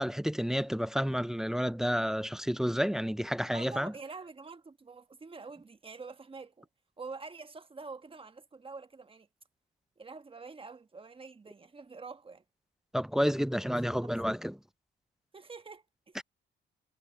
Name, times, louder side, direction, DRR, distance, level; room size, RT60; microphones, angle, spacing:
voice 1, 0.0-3.9 12.9-14.5 16.2-16.3, equal, ahead, 0.3 m, -30 dB
voice 2, 3.5-6.7 7.0-9.3 10.0-12.4 14.0-14.1 15.3-16.2, right 4 dB, 25° right, 1.3 m, -46 dB
cardioid pair, 90°, 20 cm